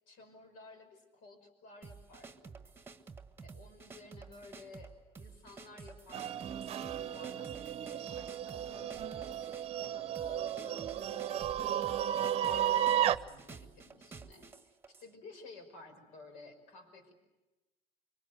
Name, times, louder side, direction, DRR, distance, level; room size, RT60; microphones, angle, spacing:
voice 1, 0.1-2.5 3.4-4.9 5.2-7.5 7.9-9.4 9.8-17.1, left 3 dB, 75° left, 8 dB, 5.7 m, -54 dB
sound 1, 1.8-15.1, right 4 dB, 15° right, 1.4 m, -51 dB
sound 2, 6.1-13.2, right 10 dB, 45° right, 0.8 m, -34 dB
25.0 x 23.5 x 8.0 m, 1.1 s
supercardioid pair, 105°, 14 cm